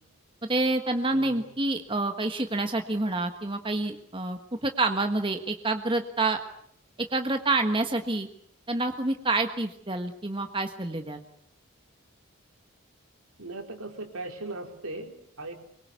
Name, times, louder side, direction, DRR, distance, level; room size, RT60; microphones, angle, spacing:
voice 1, 0.5-6.4 7.0-8.3 8.7-11.2, right 2 dB, 25° right, 6 dB, 1.4 m, -28 dB
voice 2, 1.1-1.4 13.4-15.5, right 2 dB, 85° right, 3 dB, 4.3 m, -38 dB
24.0 x 23.0 x 8.2 m, 0.68 s
head